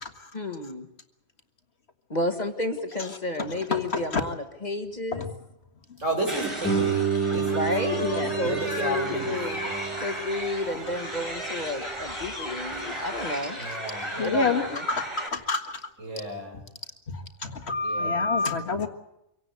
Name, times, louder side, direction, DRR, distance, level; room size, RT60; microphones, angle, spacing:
voice 1, 0.3-0.9 2.1-5.3 7.3-8.0 8.4-9.6 10.0-13.6 14.2-14.9, left 2 dB, 35° left, 6 dB, 1.8 m, -31 dB
voice 2, 3.4-4.0 5.1-5.3 8.0-8.3 9.6-9.8 13.2-13.3 14.1-14.6 14.9-15.8 17.1-18.9, left 3 dB, 50° left, 5 dB, 1.9 m, -28 dB
voice 3, 6.0-7.6 8.4-10.0 13.6-14.5 16.0-16.6 17.8-18.4, right 1 dB, 65° right, 2 dB, 6.9 m, -33 dB
sound 1, 6.3-15.3, equal, 20° right, 4.1 m, -35 dB
Guitar, 6.6-12.0, right 6 dB, 10° left, 5.4 m, -30 dB
25.0 x 17.0 x 8.2 m, 0.86 s
omnidirectional pair, 1.4 m